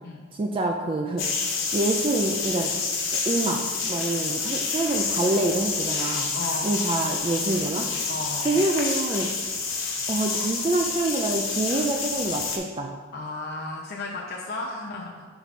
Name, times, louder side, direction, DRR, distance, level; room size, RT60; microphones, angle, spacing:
voice 1, 0.3-1.3 1.7-2.7 3.3-6.3 6.6-7.9 8.4-9.3 10.1-12.9, right 2 dB, 25° right, 2 dB, 0.3 m, -26 dB
sound 1, 1.2-12.6, left 4 dB, 80° left, 1.2 m, -28 dB
voice 2, 6.3-7.0 8.1-8.6 13.1-15.3, left 2 dB, 55° left, -2 dB, 0.6 m, -34 dB
5.8 x 4.5 x 4.1 m, 1.4 s
head